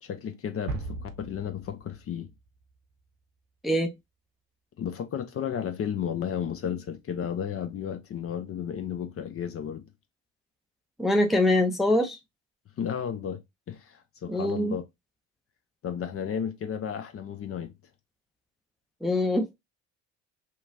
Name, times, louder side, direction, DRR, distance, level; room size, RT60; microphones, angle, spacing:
voice 1, 0.0-2.3 4.8-9.9 12.8-14.8 15.8-17.7, left 8 dB, 40° left, 0.6 m, -33 dB
sound 1, 0.7-2.6, right 3 dB, 60° right, 0.8 m, -38 dB
voice 2, 11.0-12.2 14.3-14.7 19.0-19.5, left 1 dB, ahead, 0.5 m, -24 dB
2.8 x 2.3 x 2.6 m
hypercardioid pair, 60°, 36 cm